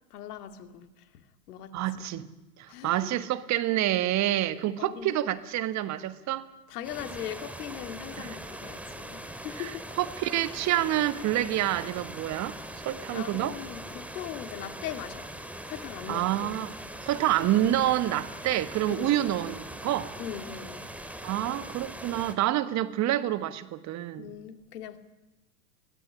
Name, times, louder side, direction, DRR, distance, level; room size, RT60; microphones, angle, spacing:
voice 1, 0.1-1.0 1.5-2.0 2.7-3.1 4.8-5.2 6.7-9.8 13.1-15.3 15.7-16.5 18.9-19.2 20.2-20.9 24.2-25.0, left 10 dB, 65° left, 2.3 m, -40 dB
voice 2, 1.7-2.3 2.6-6.5 8.2-8.3 9.6-9.7 10.0-13.5 16.1-16.7 17.0-20.1 21.2-24.3, right 13 dB, 35° right, 1.4 m, -28 dB
sound 1, 6.8-22.3, right 1 dB, 5° right, 2.1 m, -41 dB
22.0 x 16.0 x 9.8 m
hypercardioid pair, 105°, 50 cm